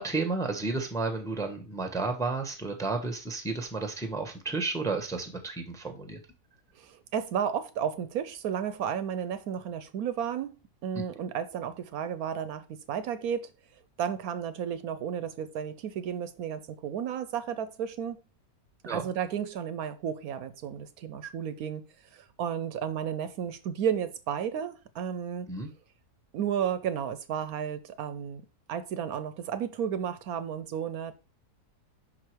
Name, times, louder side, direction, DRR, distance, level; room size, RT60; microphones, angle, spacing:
voice 1, 0.0-6.2 18.8-19.1 25.5-25.7, right 3 dB, 5° left, 0.8 m, -32 dB
voice 2, 6.8-10.5 10.8-13.5 14.0-18.2 18.8-21.8 22.1-25.5 26.3-28.4 28.7-31.1, right 8 dB, 75° right, 1.0 m, -33 dB
5.7 x 4.9 x 4.5 m
omnidirectional pair, 1.7 m